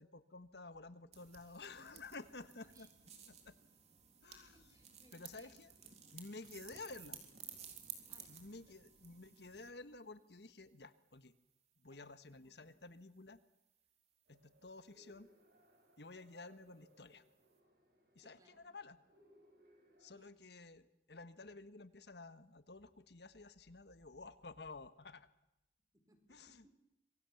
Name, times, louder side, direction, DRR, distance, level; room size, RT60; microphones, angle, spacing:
voice 1, 0.0-2.9 3.3-3.5 4.2-4.8 5.1-5.7 6.1-7.2 8.3-11.3 11.8-13.4 14.3-15.3 16.0-17.2 18.1-19.0 20.0-25.3 26.3-26.6, left 3 dB, 70° left, 12 dB, 1.5 m, -53 dB
sound 1, 1.1-9.7, right 8 dB, 40° right, 3.6 m, -55 dB
voice 2, 4.5-6.2 8.1-8.4 11.9-12.0 12.3-13.0 15.0-15.1 18.2-18.7 20.1-20.4 25.9-26.7, right 1 dB, 20° right, 7 dB, 3.9 m, -70 dB
sound 2, 14.3-20.1, right 1 dB, 60° right, 6.8 m, -69 dB
26.5 x 23.5 x 7.2 m, 0.91 s
head